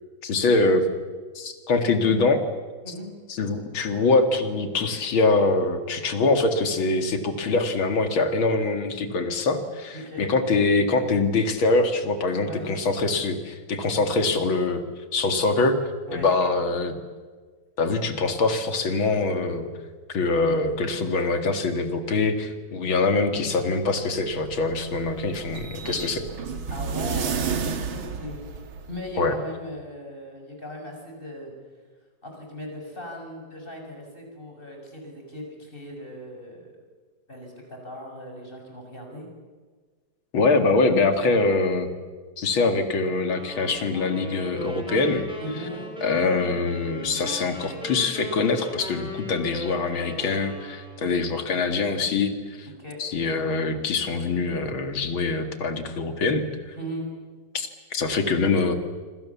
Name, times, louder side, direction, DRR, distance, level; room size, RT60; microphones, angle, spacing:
voice 1, 0.2-0.9 1.3-2.4 3.3-14.8 15.1-15.8 16.1-17.0 17.8-19.7 20.1-26.3 29.2-29.3 40.3-41.9 42.4-45.3 46.0-52.7 53.0-56.8 57.5-58.8, left 3 dB, 85° left, 7 dB, 3.0 m, -24 dB
voice 2, 9.9-10.2 12.4-12.7 16.1-16.3 20.2-20.7 26.7-31.5 32.2-36.7 37.3-39.3 45.4-45.9 52.8-53.0 56.8-57.1, equal, 25° left, 2 dB, 6.7 m, -38 dB
sound 1, 24.1-29.1, right 6 dB, 85° right, 2.5 m, -32 dB
sound 2, 43.3-51.2, left 1 dB, ahead, 5.8 m, -38 dB
26.0 x 26.0 x 7.2 m, 1.5 s
omnidirectional pair, 2.2 m